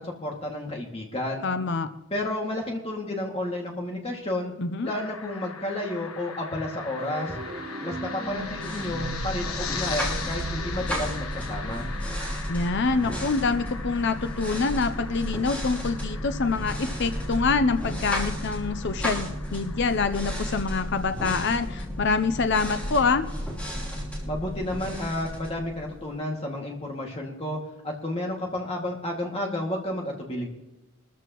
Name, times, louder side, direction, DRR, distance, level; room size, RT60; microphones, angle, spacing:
voice 1, 0.0-1.5 2.1-4.5 4.8-7.3 7.8-11.9 24.3-27.6 27.8-30.5, left 1 dB, 25° left, 0 dB, 2.2 m, -31 dB
voice 2, 1.4-1.9 4.6-4.9 12.5-23.3, left 4 dB, 50° left, 9 dB, 0.6 m, -26 dB
sound 1, 4.9-20.2, left 6 dB, 80° left, 1.4 m, -40 dB
sound 2, 7.0-12.0, right 3 dB, 40° right, 1.2 m, -38 dB
sound 3, 8.3-26.1, equal, 5° left, 3.2 m, -33 dB
22.5 x 14.0 x 3.0 m, 0.95 s
head